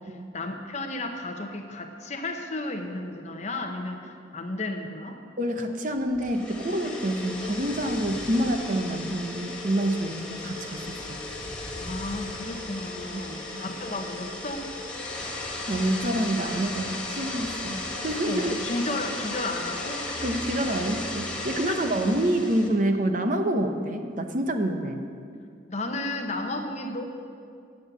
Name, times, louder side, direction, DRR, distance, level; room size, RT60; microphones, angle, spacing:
voice 1, 0.0-5.2 11.8-14.7 18.3-20.1 21.7-21.8 25.7-27.0, left 2 dB, 40° left, 5 dB, 0.9 m, -33 dB
voice 2, 5.4-11.2 13.1-13.3 13.5-13.6 15.7-18.6 20.2-25.0, right 1 dB, 45° right, 5 dB, 0.8 m, -27 dB
sound 1, 6.1-22.7, left 2 dB, 5° left, 1.4 m, -35 dB
9.2 x 7.4 x 8.0 m, 2.3 s
head